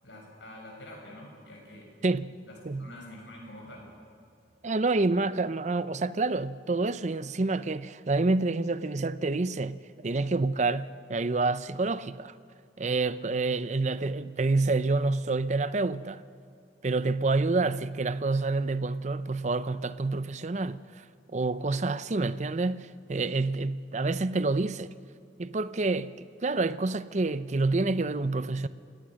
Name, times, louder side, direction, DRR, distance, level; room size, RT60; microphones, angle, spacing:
voice 1, 0.0-1.9 2.4-3.9 13.3-13.4, left 1 dB, 85° left, 7.3 m, -46 dB
voice 2, 4.6-12.3 12.8-16.2 16.8-21.0 21.3-24.9 25.4-28.7, right 3 dB, 40° right, 0.6 m, -28 dB
29.5 x 17.5 x 6.4 m
head